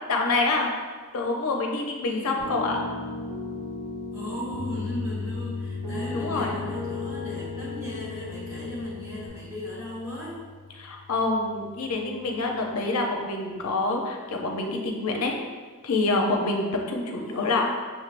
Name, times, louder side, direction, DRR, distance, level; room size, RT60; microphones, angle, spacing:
voice 1, 0.1-0.7 1.1-2.8 6.1-6.6 10.8-15.4 15.8-17.7, left 2 dB, 75° left, 1 dB, 0.6 m, -26 dB
voice 2, 2.0-2.6 4.1-10.4 17.2-17.7, left 1 dB, 15° right, -7 dB, 1.3 m, -37 dB
Piano, 2.4-9.3, left 3 dB, 75° right, 1.2 m, -36 dB
Piano 2, 4.5-12.6, left 4 dB, 50° right, 1.3 m, -39 dB
6.0 x 3.3 x 2.4 m, 1.5 s
head